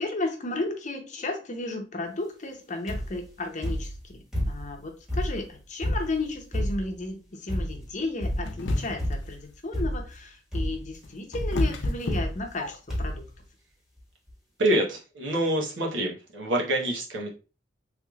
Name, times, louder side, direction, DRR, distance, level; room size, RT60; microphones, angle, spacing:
voice 1, 0.0-13.3, left 2 dB, 40° left, 3 dB, 0.7 m, -33 dB
sound 1, 2.9-3.3 3.6-4.8 5.1-7.0 7.5-7.9 8.2-8.6 9.0-9.4 9.7-10.2 10.5-11.0 11.3-11.6 12.1-12.6 12.9-13.3 14.0-14.1 14.3-14.4, equal, 5° right, 1.3 m, -30 dB
sound 2, 8.5-9.2 10.7-13.0, left 1 dB, 80° left, 0.6 m, -29 dB
voice 2, 14.6-17.3, right 1 dB, 85° right, -1 dB, 1.1 m, -26 dB
3.5 x 3.1 x 2.4 m, 0.33 s
head